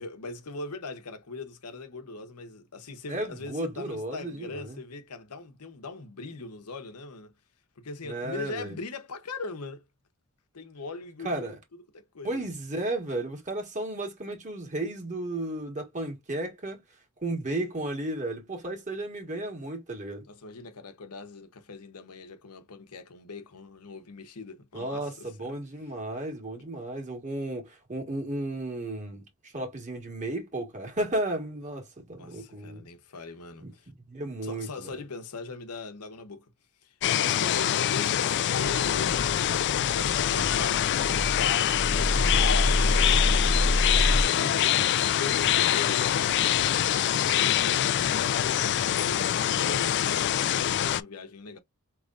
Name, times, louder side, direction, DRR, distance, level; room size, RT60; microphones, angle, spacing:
voice 1, 0.0-7.3 7.8-9.8 10.5-11.5 11.9-12.4 20.3-25.3 32.2-33.9 34.4-36.5 36.8-46.4 47.3-51.6, left 3 dB, 90° left, 0.9 m, -40 dB
voice 2, 3.1-4.8 8.0-8.8 11.2-11.6 12.2-16.8 17.2-20.2 24.7-32.8 33.6-33.7 34.1-34.9 44.4-44.5, right 1 dB, 35° right, 1.5 m, -34 dB
sound 1, 37.0-51.0, left 11 dB, 50° left, 0.3 m, -25 dB
sound 2, 38.6-44.2, left 1 dB, 30° left, 0.8 m, -27 dB
5.0 x 3.1 x 2.4 m
head